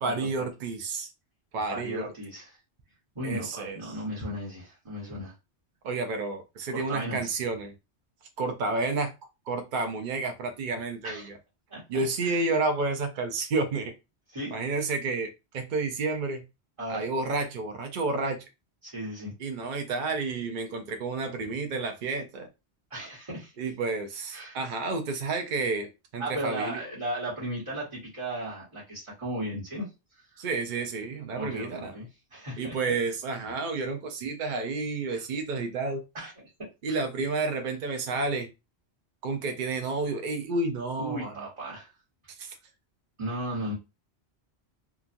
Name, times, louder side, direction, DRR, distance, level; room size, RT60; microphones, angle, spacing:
voice 1, 0.0-1.1 1.5-2.1 3.2-4.0 5.8-7.7 8.4-9.1 9.5-11.4 11.9-13.9 14.5-16.4 16.9-18.4 19.4-22.5 23.6-26.8 30.4-31.9 32.6-36.0 36.8-38.5 39.2-41.5 42.4-42.5, right 3 dB, 55° right, 0.6 m, -30 dB
voice 2, 1.7-2.6 3.1-5.3 6.7-7.3 11.0-11.3 11.7-12.4 14.3-14.6 16.8-17.0 18.8-19.3 22.9-23.5 24.3-24.6 26.2-29.9 31.3-32.8 35.1-35.2 36.1-36.5 36.9-37.0 41.0-41.9 43.2-43.7, right 1 dB, 30° right, 1.2 m, -36 dB
2.9 x 2.3 x 2.5 m
omnidirectional pair, 1.1 m